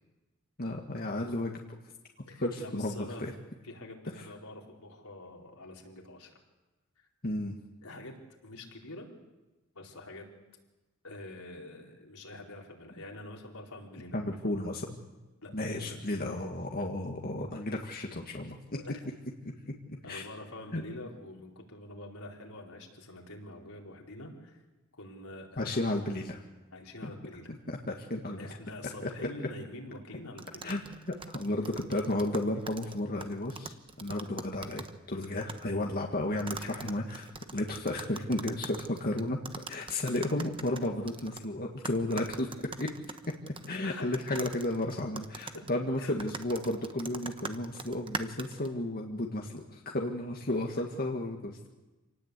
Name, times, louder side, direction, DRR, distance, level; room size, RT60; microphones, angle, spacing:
voice 1, 0.6-1.6 2.4-3.3 7.2-7.6 14.1-15.0 15.5-18.6 20.1-20.2 20.7-20.8 25.6-26.4 27.0-27.1 27.7-28.5 29.0-29.1 30.6-31.0 31.3-39.4 39.7-42.5 42.8-42.9 43.3-43.4 43.7-51.7, left 1 dB, 45° left, 1 dB, 1.8 m, -33 dB
voice 2, 2.2-3.2 3.6-6.4 7.0-7.1 7.8-8.1 8.4-9.1 9.7-10.3 11.0-14.2 15.4-16.0 18.7-19.0 20.0-24.6 24.9-25.7 26.7-27.5 28.4-30.8 36.6-36.7 43.8-44.0 45.5-45.7 46.0-46.1, left 2 dB, 75° left, -1 dB, 4.3 m, -46 dB
sound 1, 30.4-35.0 35.2-35.6 36.4-41.5 41.8-43.8 44.1-48.7, right 4 dB, 25° right, 1.1 m, -42 dB
27.0 x 18.5 x 8.3 m, 1.1 s
head